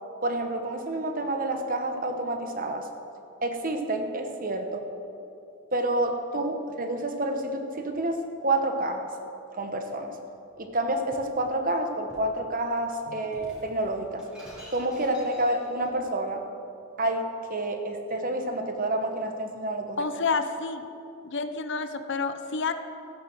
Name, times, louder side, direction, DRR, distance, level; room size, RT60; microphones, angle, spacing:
voice 1, 0.2-2.9 3.4-4.8 5.7-9.1 9.5-10.1 10.6-14.3 14.7-16.4 17.0-20.1, right 1 dB, 40° right, 6 dB, 1.2 m, -29 dB
Shatter, 10.5-11.4 12.1-12.4 13.3-15.9, equal, 5° right, 3.7 m, -49 dB
voice 2, 20.0-20.8 21.2-22.7, left 4 dB, 55° left, 9 dB, 0.8 m, -29 dB
14.5 x 10.5 x 7.7 m, 2.8 s
head